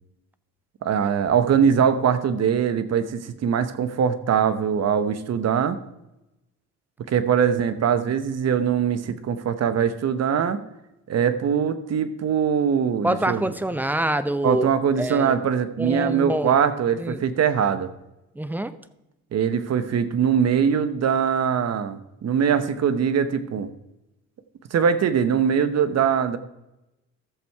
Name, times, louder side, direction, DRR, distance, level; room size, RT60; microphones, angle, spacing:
voice 1, 0.8-5.8 7.1-10.6 11.1-13.4 14.4-17.9 19.3-23.7 24.7-26.4, right 7 dB, 60° right, 12 dB, 1.0 m, -22 dB
voice 2, 13.0-14.7 15.0-15.4 15.8-16.5 17.0-17.2 18.3-18.8, right 1 dB, 5° right, 13 dB, 0.7 m, -26 dB
13.5 x 7.1 x 4.6 m, 0.94 s
cardioid pair, 90°, 30 cm